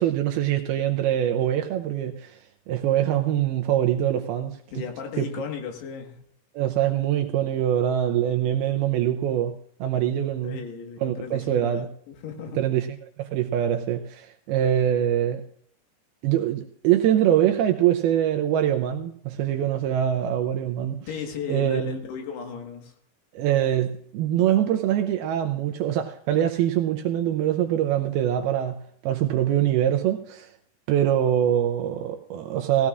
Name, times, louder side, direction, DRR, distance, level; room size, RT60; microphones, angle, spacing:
voice 1, 0.0-2.4 2.7-4.6 5.2-5.3 6.6-10.6 11.0-11.9 12.6-12.9 13.2-15.4 16.2-21.0 21.5-21.9 23.3-28.8 29.0-30.5 30.9-32.9, right 11 dB, 80° right, 2.3 m, -23 dB
voice 2, 4.7-6.2 10.4-11.9 12.1-12.6 21.1-22.9 28.2-28.3, left 6 dB, 75° left, 3.6 m, -35 dB
18.5 x 16.0 x 2.4 m
omnidirectional pair, 4.9 m